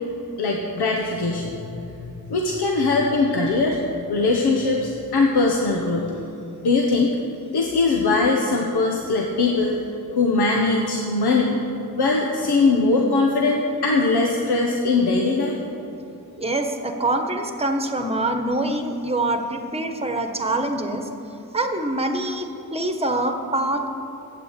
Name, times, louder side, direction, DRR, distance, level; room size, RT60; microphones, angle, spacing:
voice 1, 0.4-3.8 4.1-6.1 6.6-7.2 7.5-9.7 10.1-11.6 11.9-15.6, left 3 dB, 85° left, 0 dB, 1.2 m, -21 dB
voice 2, 16.4-21.1 21.5-23.9, right 2 dB, 15° right, 5 dB, 1.3 m, -25 dB
12.0 x 8.5 x 8.2 m, 2.9 s
wide cardioid pair, 100°, 38 cm